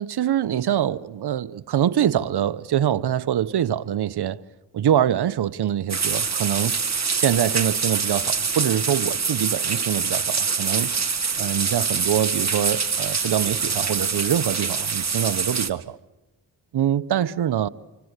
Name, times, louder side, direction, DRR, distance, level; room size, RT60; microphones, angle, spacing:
voice 1, 0.0-4.4 4.7-6.8 7.1-10.9 11.4-16.0 16.7-17.7, right 10 dB, 70° right, 1.0 m, -24 dB
sound 1, 5.9-15.7, right 5 dB, 40° right, 1.8 m, -25 dB
27.0 x 24.5 x 8.2 m
supercardioid pair, 40°, 41 cm